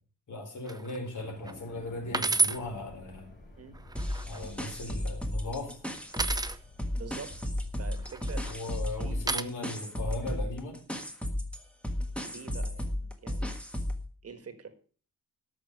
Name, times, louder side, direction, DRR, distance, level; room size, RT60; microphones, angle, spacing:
voice 1, 0.3-3.4 4.3-5.7 8.5-10.8, left 2 dB, 60° left, 1 dB, 4.8 m, -38 dB
sound 1, 0.7-1.0 1.5-1.6 2.1-2.6 3.8-4.4 6.1-6.6 8.0-8.5 9.3-9.4, right 3 dB, 10° right, 0.5 m, -29 dB
sound 2, 1.2-9.7, left 1 dB, 30° left, 3.5 m, -50 dB
sound 3, 4.0-6.5 6.8-14.0, left 1 dB, 5° left, 1.4 m, -34 dB
voice 2, 6.9-7.5 7.8-8.4 8.9-9.2 12.2-13.5 14.2-14.7, right 5 dB, 45° right, 9 dB, 1.6 m, -45 dB
13.5 x 6.3 x 6.8 m, 0.41 s
wide cardioid pair, 175°, 33 cm